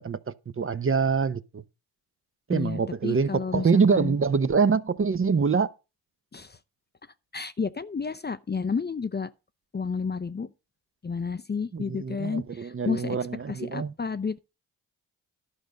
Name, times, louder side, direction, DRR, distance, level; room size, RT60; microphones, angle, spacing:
voice 1, 0.0-1.6 2.5-5.7 11.7-13.9, right 5 dB, 30° right, 0.8 m, -25 dB
voice 2, 2.5-4.2 6.3-6.6 7.3-9.3 9.7-10.5 11.0-13.2 13.5-14.4, left 5 dB, 25° left, 0.7 m, -31 dB
11.5 x 5.2 x 6.3 m
supercardioid pair, 55°, 42 cm